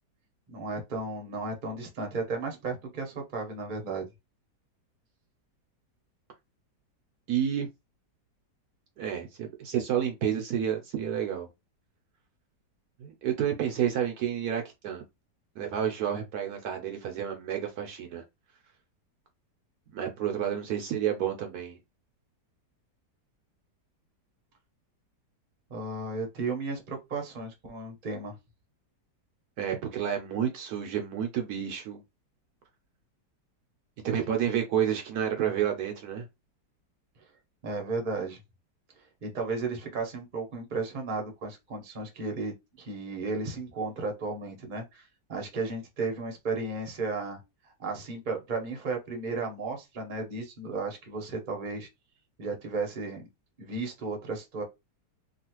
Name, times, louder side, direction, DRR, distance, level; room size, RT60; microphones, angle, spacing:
voice 1, 0.5-4.0 25.7-28.3 37.6-38.4 39.2-45.0 45.3-47.4 47.8-51.9 52.4-53.2 53.6-54.6, right 3 dB, 35° right, 0.8 m, -34 dB
voice 2, 7.3-7.7 9.0-11.5 13.0-15.0 15.6-18.2 19.9-21.8 29.6-32.0 34.0-36.3, right 9 dB, 70° right, 1.1 m, -30 dB
3.0 x 2.4 x 2.9 m
omnidirectional pair, 1.8 m